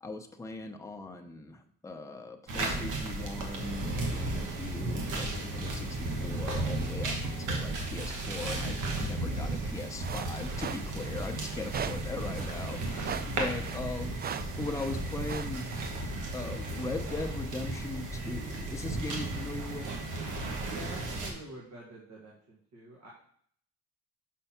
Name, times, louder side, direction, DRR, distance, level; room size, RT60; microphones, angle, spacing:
voice 1, 0.0-14.2 14.6-16.0 16.3-19.9, left 3 dB, 10° left, 4 dB, 0.7 m, -39 dB
sound 1, 2.5-21.3, right 2 dB, 90° right, 1.4 m, -34 dB
sound 2, 10.0-15.9, right 8 dB, 35° right, 0.4 m, -41 dB
voice 2, 20.7-23.1, right 2 dB, 65° right, -3 dB, 1.8 m, -47 dB
5.5 x 4.6 x 5.7 m, 0.63 s
cardioid pair, 90°, 30 cm